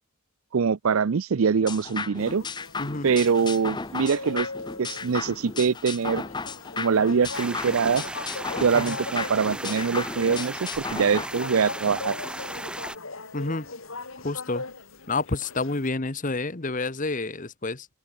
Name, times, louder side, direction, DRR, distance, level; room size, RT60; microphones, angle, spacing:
voice 1, 0.5-2.4 3.0-4.5 4.8-6.2 6.8-8.0 8.6-12.1, right 6 dB, 70° right, 0.5 m, -23 dB
sound 1, 1.7-11.3, left 4 dB, 20° left, 0.8 m, -35 dB
sound 2, 2.2-15.9, left 3 dB, 65° left, 2.6 m, -39 dB
voice 2, 2.8-3.1 8.7-9.0 13.3-13.7 14.2-14.6 15.1-17.9, left 3 dB, 35° left, 1.1 m, -29 dB
sound 3, 7.3-13.0, right 1 dB, 5° right, 1.1 m, -36 dB
open air
head